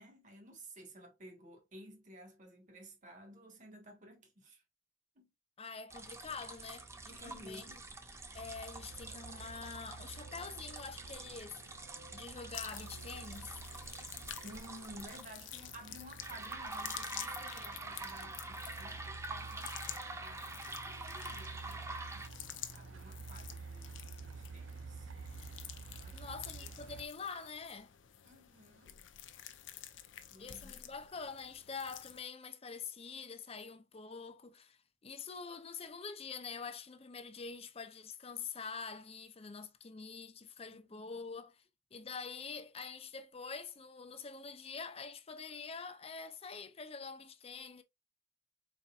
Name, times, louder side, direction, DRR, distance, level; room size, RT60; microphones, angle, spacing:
voice 1, 0.0-4.6 5.1-5.3 7.1-7.8 14.4-22.3 22.8-25.1 26.0-26.3 28.2-29.0 30.3-30.8 40.7-41.1, equal, 40° right, 1.6 m, -54 dB
voice 2, 5.6-7.6 8.3-13.6 26.1-27.9 30.4-41.6 41.9-47.8, left 5 dB, 30° left, 0.6 m, -46 dB
sound 1, 5.9-15.2 16.2-22.3, right 2 dB, 15° right, 0.5 m, -46 dB
Truck, 8.4-27.1, right 4 dB, 75° right, 0.6 m, -50 dB
sound 2, 12.5-32.2, left 11 dB, 70° left, 0.6 m, -50 dB
4.3 x 4.1 x 2.4 m
head